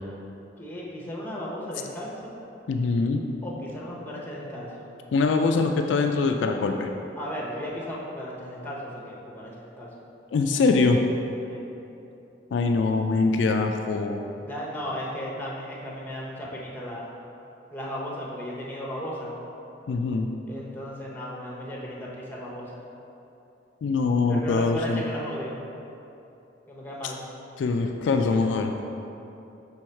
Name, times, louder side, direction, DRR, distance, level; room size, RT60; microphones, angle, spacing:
voice 1, 0.6-2.3 3.4-4.9 7.2-9.9 11.5-11.6 14.4-17.1 17.7-19.4 20.5-22.8 24.3-25.6 26.7-27.2, equal, 10° left, -4 dB, 0.8 m, -35 dB
voice 2, 2.7-3.2 5.1-6.9 10.3-11.0 12.5-14.2 19.9-20.3 23.8-25.0 27.0-27.1 27.6-28.7, left 4 dB, 85° left, 4 dB, 0.3 m, -23 dB
6.3 x 3.4 x 4.4 m, 2.9 s
head